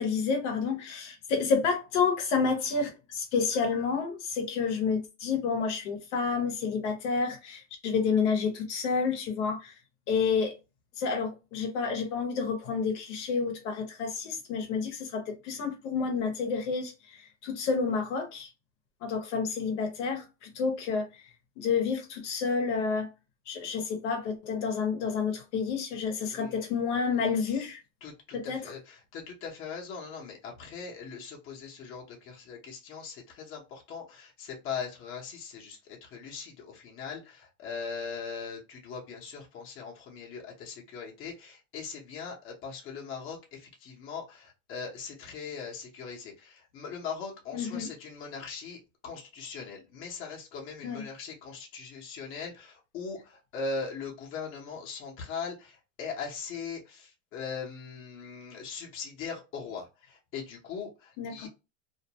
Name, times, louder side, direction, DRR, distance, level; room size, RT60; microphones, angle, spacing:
voice 1, 0.0-9.8 10.1-10.5 11.0-18.5 19.0-21.2 21.6-23.1 23.5-27.8 28.3-28.6 47.5-47.9 50.8-51.0 61.2-61.5, left 5 dB, 65° left, 0.9 m, -29 dB
voice 2, 26.3-26.7 27.4-27.7 28.0-61.5, left 5 dB, 35° left, 0.9 m, -40 dB
2.6 x 2.1 x 2.9 m
supercardioid pair, 140°, 37 cm